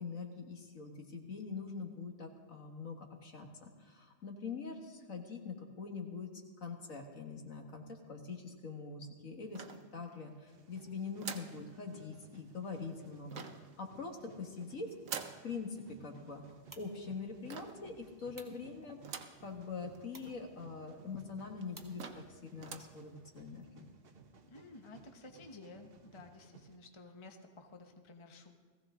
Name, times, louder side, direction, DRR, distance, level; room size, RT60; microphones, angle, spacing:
voice 1, 0.0-6.3 6.6-9.6 9.9-14.9 15.4-16.4 16.8-23.9, left 4 dB, 60° left, 2 dB, 2.0 m, -44 dB
sound 1, 9.5-10.3 11.2-11.6 13.3-13.7 15.1-15.5 17.5-17.9 19.0-19.5 19.9-20.0 20.3-20.4 21.1-21.2 21.6-21.7 22.0-22.3 22.6-23.0, right 6 dB, 65° right, 1.3 m, -45 dB
sound 2, 10.5-26.8, right 5 dB, 45° right, 1.0 m, -60 dB
sound 3, 16.3-22.7, right 1 dB, 15° right, 1.4 m, -62 dB
voice 2, 24.5-28.5, left 3 dB, 25° left, 4 dB, 0.9 m, -53 dB
19.0 x 15.0 x 3.7 m, 1.5 s
omnidirectional pair, 1.6 m